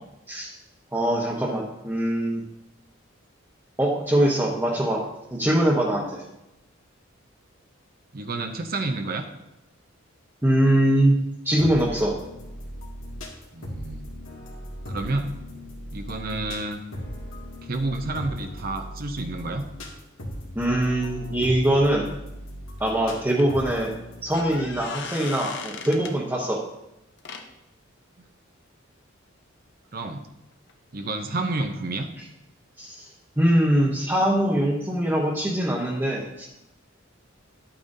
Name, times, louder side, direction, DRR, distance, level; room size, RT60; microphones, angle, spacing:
voice 1, 0.9-2.4 3.8-5.0 5.3-6.2 10.4-11.1 11.4-12.2 20.5-22.1 22.8-23.9 24.2-26.6 32.8-33.1 33.4-36.5, right 1 dB, 10° right, -4 dB, 1.0 m, -22 dB
voice 2, 8.1-9.2 13.5-14.0 14.9-15.3 15.9-16.8 17.6-19.6 29.9-30.2 30.9-32.1, right 2 dB, 45° right, 5 dB, 0.7 m, -29 dB
sound 1, 11.6-24.7, equal, 80° left, 2.1 m, -38 dB
sound 2, 22.8-22.9 23.4-23.5 24.1-26.2 27.2-27.5 30.7-30.8 31.0-31.1, left 5 dB, 60° left, 0.9 m, -37 dB
11.5 x 8.7 x 2.7 m, 0.90 s
head